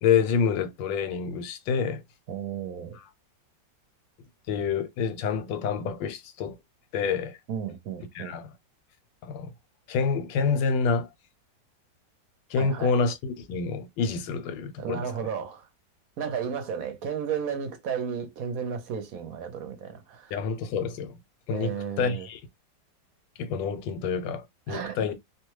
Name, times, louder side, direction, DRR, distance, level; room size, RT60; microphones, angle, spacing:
voice 1, 0.0-2.0 4.5-6.6 6.9-7.4 8.1-8.4 9.2-9.5 9.9-11.1 12.5-15.1 20.3-21.2 21.5-22.4 23.4-25.1, left 5 dB, 85° left, 1.3 m, -27 dB
voice 2, 2.3-3.0 7.5-8.4 12.6-12.9 14.8-15.7 16.2-20.4 21.5-22.3 24.7-25.1, right 7 dB, 65° right, 1.0 m, -33 dB
2.9 x 2.2 x 3.1 m
omnidirectional pair, 2.0 m